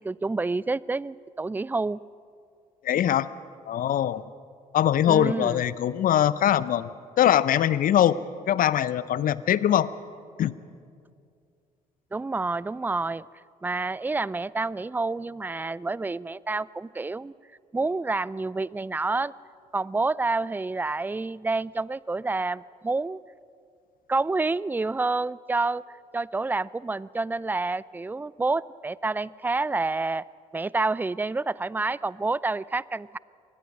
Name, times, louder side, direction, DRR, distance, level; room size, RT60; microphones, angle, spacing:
voice 1, 0.0-2.0 5.1-5.6 12.1-13.3 13.6-17.3 17.7-19.3 19.7-23.2 24.1-25.8 26.1-30.2 30.5-33.2, right 3 dB, 10° right, 22 dB, 0.4 m, -28 dB
voice 2, 2.8-3.3 3.7-4.2 4.7-6.9 7.2-8.2 8.5-9.9 10.4-10.5, left 11 dB, 50° left, 18 dB, 0.7 m, -22 dB
26.5 x 20.5 x 5.4 m, 2.3 s
figure-of-eight pair, 45°, 18 cm